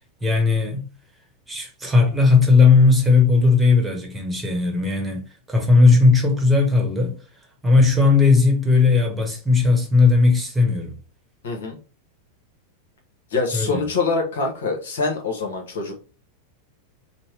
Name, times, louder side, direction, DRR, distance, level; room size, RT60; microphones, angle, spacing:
voice 1, 0.2-0.8 1.5-5.2 5.5-7.2 7.6-10.9 13.5-13.8, left 4 dB, 10° right, 1.2 m, -17 dB
voice 2, 11.4-11.8 13.3-16.0, left 4 dB, 60° left, 1.1 m, -25 dB
4.2 x 2.2 x 3.3 m
figure-of-eight pair, 90°, 0 cm